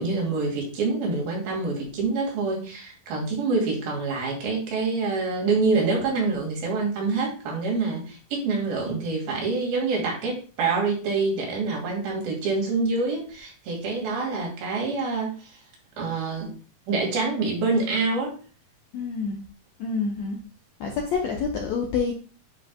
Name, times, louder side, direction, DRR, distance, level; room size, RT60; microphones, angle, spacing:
voice 1, 0.0-15.6 16.0-16.5 16.9-18.3, right 3 dB, 80° right, -1 dB, 3.9 m, -26 dB
voice 2, 18.9-19.4 19.8-20.4 20.8-22.1, left 5 dB, 75° left, 1 dB, 1.6 m, -27 dB
10.0 x 5.4 x 2.3 m, 0.37 s
omnidirectional pair, 4.2 m